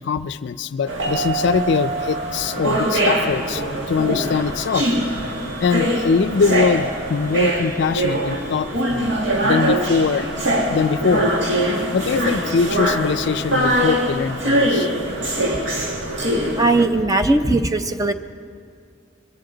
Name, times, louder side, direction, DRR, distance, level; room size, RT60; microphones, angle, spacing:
voice 1, 0.0-4.9 5.6-9.1 9.4-11.3 11.9-14.9, left 5 dB, 60° left, 13 dB, 0.4 m, -22 dB
sound 1, 0.9-16.9, right 1 dB, 65° right, 2.0 m, -22 dB
voice 2, 16.6-18.1, right 2 dB, 20° right, 7 dB, 0.6 m, -18 dB
22.5 x 16.0 x 3.9 m, 2.4 s
head